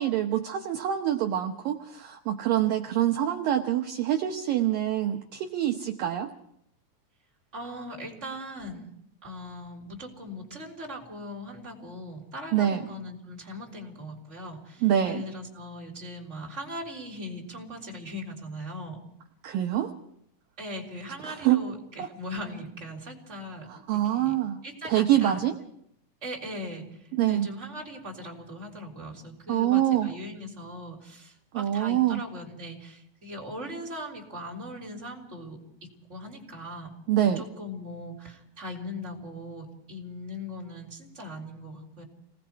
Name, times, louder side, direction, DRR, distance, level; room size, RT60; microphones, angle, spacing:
voice 1, 0.0-6.3 12.5-12.9 14.8-15.2 19.4-19.9 21.3-21.6 22.0-22.1 23.7-24.6 24.8-25.6 27.1-27.5 29.5-30.1 31.5-32.2 37.1-37.4, right 11 dB, 70° right, 3 dB, 2.4 m, -25 dB
voice 2, 7.5-8.9 9.2-19.0 20.6-23.7 24.1-24.3 24.6-25.4 26.2-26.9 27.2-36.9 37.3-42.0, left 1 dB, 15° right, -1 dB, 3.5 m, -39 dB
29.0 x 19.0 x 4.7 m, 0.74 s
omnidirectional pair, 5.0 m